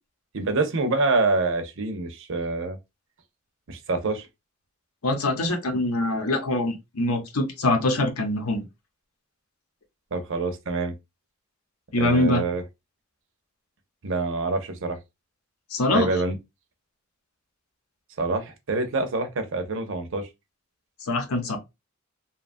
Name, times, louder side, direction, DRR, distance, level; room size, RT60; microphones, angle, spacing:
voice 1, 0.3-2.8 3.7-4.3 10.1-10.9 12.0-12.6 14.0-15.0 15.9-16.4 18.2-20.3, right 3 dB, 60° right, 0.6 m, -26 dB
voice 2, 5.0-8.6 11.9-12.4 15.7-16.1 21.0-21.6, left 2 dB, 85° left, 0.8 m, -24 dB
2.8 x 2.3 x 2.5 m
head